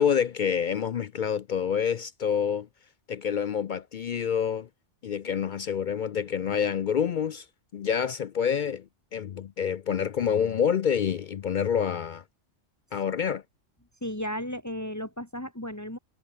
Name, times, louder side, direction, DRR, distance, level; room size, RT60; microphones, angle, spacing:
voice 1, 0.0-2.7 3.1-4.7 5.0-7.5 7.7-8.8 9.1-12.2 12.9-13.4, left 7 dB, 55° left, 0.5 m, -27 dB
voice 2, 14.0-16.0, equal, 15° left, 3.4 m, -34 dB
omnidirectional pair, 1.3 m